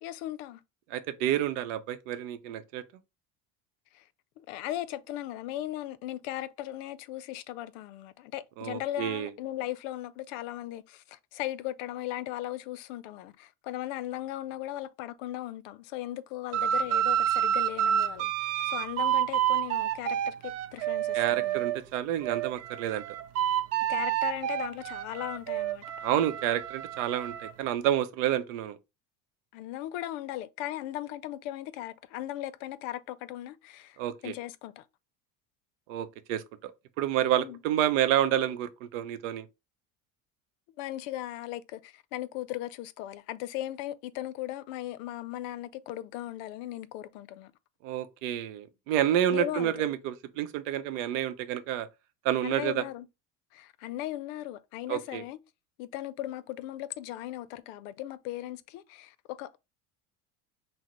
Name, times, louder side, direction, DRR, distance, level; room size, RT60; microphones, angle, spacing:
voice 1, 0.0-0.6 3.9-4.0 4.4-18.3 18.7-21.6 23.9-25.8 29.5-34.0 34.2-34.9 37.4-37.6 40.8-47.5 49.3-49.7 52.4-53.1 53.5-55.4 55.8-59.6, left 14 dB, 85° left, 0.6 m, -37 dB
voice 2, 0.9-2.8 8.6-9.3 21.1-23.0 26.0-28.8 34.0-34.3 35.9-36.7 37.0-39.5 47.8-51.9 52.2-52.8 54.9-55.2, right 11 dB, 90° right, 0.7 m, -29 dB
sound 1, 16.5-21.8 22.2-27.5, right 10 dB, 45° right, 0.4 m, -29 dB
5.9 x 2.1 x 3.0 m
cardioid pair, 130°, 37 cm